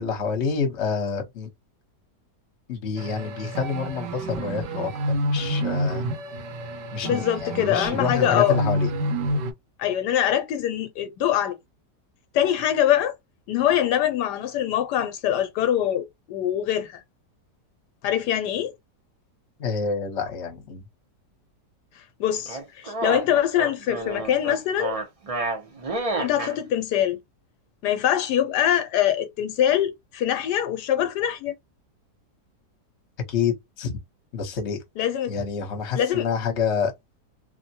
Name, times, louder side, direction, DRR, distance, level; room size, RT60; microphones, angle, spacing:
voice 1, 0.0-1.5 2.7-4.9 5.2-6.1 6.9-8.9 19.6-20.8 33.3-34.0 34.3-34.8 35.3-36.9, left 6 dB, 50° left, 1.1 m, -28 dB
sound 1, 3.0-9.5, right 1 dB, 85° right, 1.4 m, -28 dB
voice 2, 7.0-8.6 9.8-11.6 12.3-13.2 13.5-17.0 18.0-18.7 22.0-25.0 26.2-27.2 27.8-31.5 35.0-35.3 35.9-36.3, left 10 dB, 80° left, 1.1 m, -23 dB
sound 2, 22.5-26.5, right 2 dB, 55° right, 0.3 m, -30 dB
3.3 x 2.1 x 2.7 m
omnidirectional pair, 1.8 m